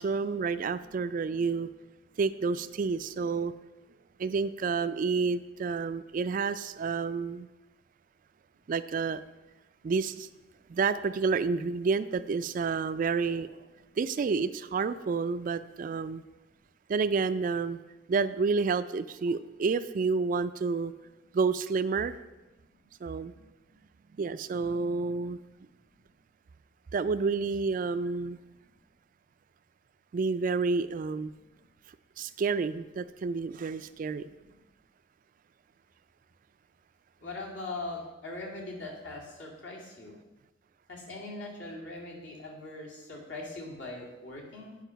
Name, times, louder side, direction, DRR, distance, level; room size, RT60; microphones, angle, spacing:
voice 1, 0.0-1.7 2.2-3.5 4.2-7.5 8.7-9.2 9.8-10.3 10.7-13.5 14.0-16.2 16.9-17.8 18.1-20.9 21.3-22.2 23.0-23.3 24.2-25.4 26.9-28.4 30.1-31.3 32.2-34.2, right 4 dB, 45° right, 13 dB, 0.3 m, -29 dB
voice 2, 37.2-40.2 40.9-44.8, left 2 dB, 70° left, -2 dB, 2.2 m, -41 dB
9.0 x 5.4 x 5.7 m, 1.1 s
head